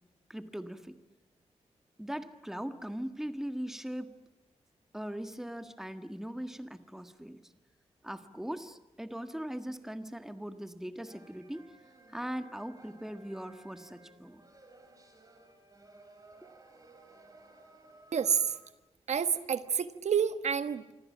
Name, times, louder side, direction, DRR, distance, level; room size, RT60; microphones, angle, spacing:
voice 1, 0.3-1.0 2.0-4.1 4.9-7.4 8.0-11.7 12.1-14.4, equal, 5° right, 9 dB, 1.7 m, -40 dB
sound 1, 11.0-18.7, right 2 dB, 30° right, 5.2 m, -58 dB
voice 2, 18.1-18.6 19.1-20.9, right 7 dB, 75° right, 11 dB, 1.4 m, -29 dB
27.0 x 25.0 x 7.4 m, 1.1 s
wide cardioid pair, 135°, 12 cm